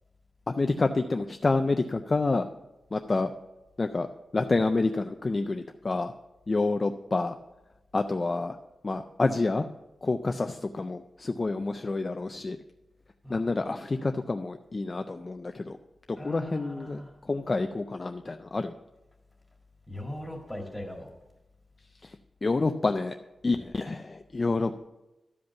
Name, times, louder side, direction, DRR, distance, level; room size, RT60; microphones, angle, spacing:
voice 1, 0.5-2.5 2.9-3.3 3.8-4.1 4.3-6.1 6.5-7.4 7.9-8.6 8.8-9.6 10.0-12.6 13.3-15.8 16.1-17.0 17.3-18.7 22.4-23.2 23.4-24.9, left 3 dB, 30° left, 6 dB, 0.3 m, -28 dB
voice 2, 16.2-17.2 19.9-21.1, left 1 dB, 5° left, 0 dB, 1.9 m, -40 dB
12.0 x 5.2 x 6.9 m, 1.0 s
wide cardioid pair, 175°, 0 cm